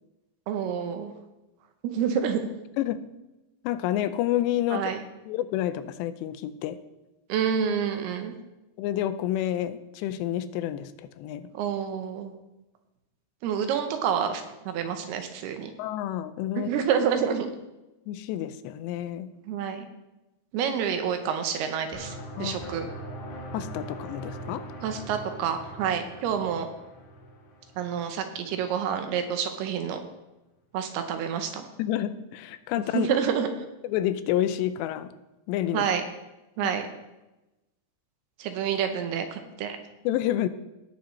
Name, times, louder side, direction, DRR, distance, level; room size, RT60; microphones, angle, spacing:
voice 1, 0.5-1.1 1.8-2.4 4.7-5.0 7.3-8.3 11.5-12.3 13.4-15.7 16.6-17.5 19.5-19.9 20.5-22.9 24.8-26.7 27.8-30.0 30.7-31.6 32.9-33.5 35.7-36.0 36.6-36.9 38.4-39.8, right 8 dB, 75° right, 6 dB, 2.6 m, -28 dB
voice 2, 3.6-4.9 5.3-6.8 8.8-11.5 15.8-16.7 18.1-19.3 22.3-22.6 23.5-24.7 31.8-33.1 33.8-35.1 35.5-35.9 36.6-36.7 40.1-40.5, left 12 dB, 90° left, 13 dB, 2.8 m, -29 dB
sound 1, 21.9-28.6, right 1 dB, 65° left, 4.0 m, -41 dB
17.5 x 7.3 x 3.1 m, 0.99 s
omnidirectional pair, 4.9 m